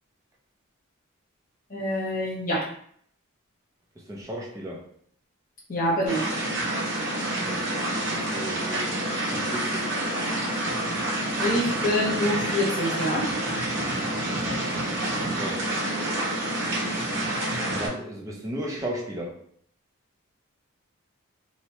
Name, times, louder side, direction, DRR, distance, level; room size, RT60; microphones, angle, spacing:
voice 1, 1.7-2.7 5.7-6.3 11.4-13.3, left 1 dB, 40° left, -4 dB, 0.8 m, -26 dB
voice 2, 4.0-4.9 7.4-7.8 8.1-9.9 15.2-15.8 17.7-19.4, right 1 dB, 15° right, -3 dB, 0.5 m, -35 dB
sound 1, 6.1-17.9, right 1 dB, 60° right, 0.9 m, -28 dB
2.9 x 2.1 x 2.9 m, 0.63 s
head